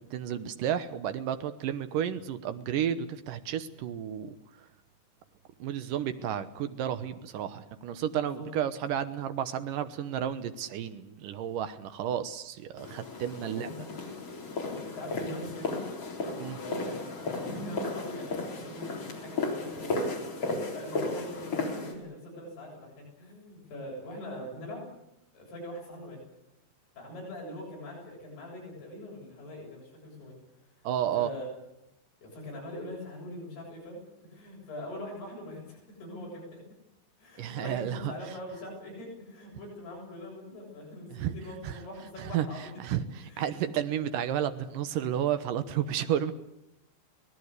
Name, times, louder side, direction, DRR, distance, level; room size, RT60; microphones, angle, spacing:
voice 1, 0.1-4.4 5.6-13.7 16.4-16.6 20.5-20.7 30.8-31.3 37.4-38.1 41.1-41.3 41.6-41.8 42.2-42.5 42.8-46.3, right 10 dB, 75° right, 10 dB, 2.0 m, -32 dB
voice 2, 8.1-8.5 13.2-13.7 14.6-15.9 16.6-17.0 17.4-20.1 20.7-24.9 25.3-26.2 27.0-30.4 31.2-31.5 32.2-36.6 37.2-42.7 43.2-43.5, left 1 dB, 60° left, -1 dB, 9.2 m, -42 dB
sound 1, 12.8-21.9, left 3 dB, 35° left, 4.2 m, -34 dB
26.0 x 19.0 x 8.2 m, 0.85 s
omnidirectional pair, 5.3 m